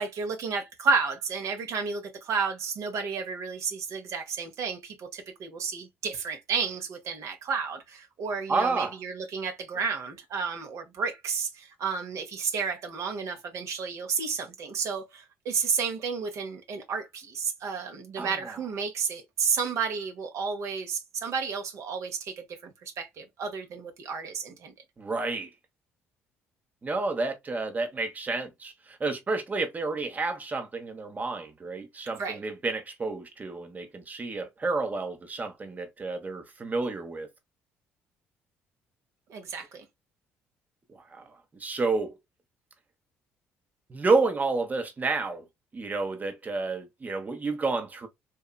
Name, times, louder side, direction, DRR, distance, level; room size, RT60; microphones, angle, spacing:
voice 1, 0.0-24.7 32.2-32.4 39.3-39.8, right 5 dB, 65° right, 0.7 m, -32 dB
voice 2, 8.5-9.0 18.2-18.3 25.0-25.5 26.8-37.3 40.9-41.3 41.6-42.1 43.9-45.4 45.7-48.1, right 3 dB, 30° right, 0.8 m, -30 dB
2.9 x 2.3 x 2.2 m
supercardioid pair, 65°, 6 cm